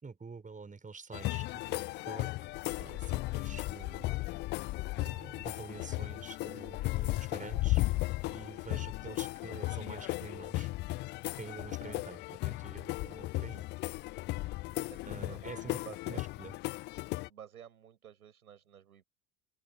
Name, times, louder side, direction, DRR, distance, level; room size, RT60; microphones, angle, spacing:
voice 1, 0.0-4.4 5.0-7.8 8.2-10.7 11.3-13.7 15.0-16.5, right 4 dB, 15° right, 6.4 m, -48 dB
sound 1, 1.1-17.3, left 20 dB, 25° left, 0.4 m, -36 dB
voice 2, 14.7-16.2 17.2-19.0, right 9 dB, 70° right, 6.9 m, -53 dB
open air
figure-of-eight pair, 75°, 45 cm